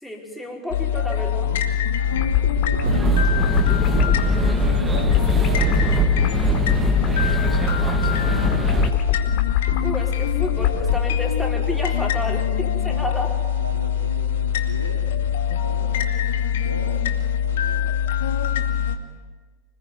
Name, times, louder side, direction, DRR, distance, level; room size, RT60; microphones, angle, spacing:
voice 1, 0.0-1.5 9.8-13.3, left 1 dB, 5° left, 0 dB, 4.8 m, -30 dB
sound 1, 0.7-19.0, left 9 dB, 60° left, 2.3 m, -23 dB
sound 2, 2.0-11.0, left 10 dB, 40° left, 3.6 m, -25 dB
voice 2, 2.0-3.5 4.2-8.8 12.3-12.4 12.9-13.2 13.5-15.1 15.6-17.1 17.4-17.9, right 2 dB, 80° right, 2 dB, 2.7 m, -38 dB
sound 3, 2.8-8.9, right 4 dB, 15° right, 1.9 m, -23 dB
26.0 x 20.0 x 9.6 m, 1.4 s
figure-of-eight pair, 90°, 0 cm